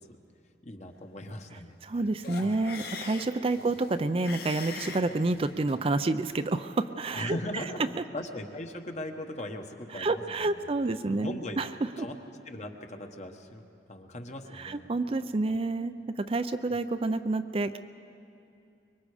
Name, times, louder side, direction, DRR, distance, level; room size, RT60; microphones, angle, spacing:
voice 1, 0.6-1.8 2.4-2.7 7.1-10.7 11.1-11.6 12.0-12.1 12.5-13.6 13.9-14.8 15.5-15.6 17.0-17.1, left 1 dB, 40° left, 5 dB, 1.2 m, -39 dB
voice 2, 1.8-7.6 9.9-11.7 12.0-12.1 14.5-17.8, right 2 dB, 30° right, 10 dB, 0.4 m, -29 dB
sound 1, 2.2-5.8, left 4 dB, 60° left, 1.6 m, -42 dB
24.5 x 22.5 x 4.9 m, 2.6 s
head